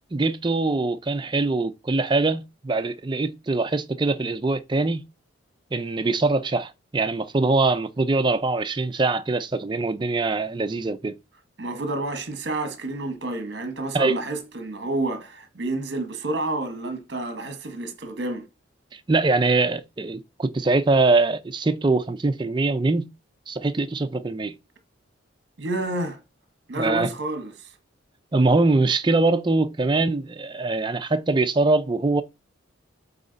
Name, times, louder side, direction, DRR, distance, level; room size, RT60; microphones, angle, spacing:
voice 1, 0.1-5.0 5.7-11.2 13.9-14.2 18.9-23.1 23.5-24.5 26.8-27.1 28.3-32.2, right 3 dB, 20° right, 0.4 m, -23 dB
voice 2, 11.6-18.5 25.6-26.2 26.7-27.7, right 2 dB, 55° right, 1.1 m, -29 dB
8.2 x 3.0 x 3.9 m
head